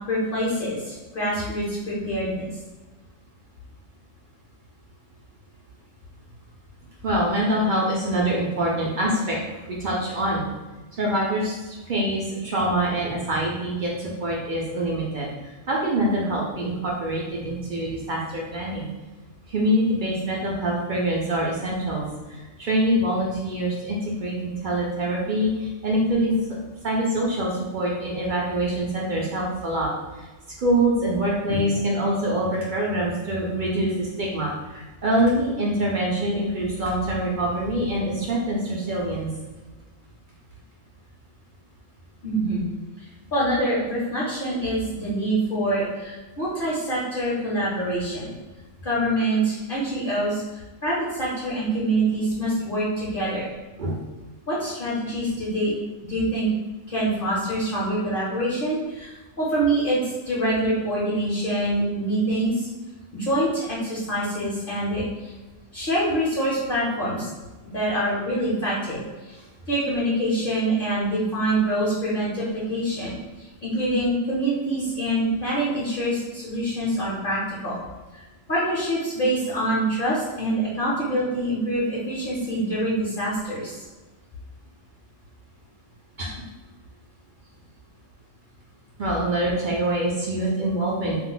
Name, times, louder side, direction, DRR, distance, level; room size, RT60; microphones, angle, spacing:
voice 1, 0.1-2.4 42.2-42.6 43.3-48.3 48.8-53.5 54.5-55.7 56.1-56.5 56.9-62.5 63.1-65.3 65.7-67.3 67.7-69.0 69.3-69.4 69.7-73.1 73.6-77.8 78.1-78.2 78.5-83.9, right 1 dB, 50° left, -7 dB, 0.8 m, -25 dB
voice 2, 7.0-9.4 9.7-10.5 10.9-18.9 19.5-26.3 26.8-30.3 30.6-39.3 53.8-54.0 86.2-86.3 89.0-91.2, right 1 dB, 60° right, -3 dB, 0.5 m, -25 dB
2.4 x 2.0 x 3.8 m, 1.2 s
omnidirectional pair, 1.4 m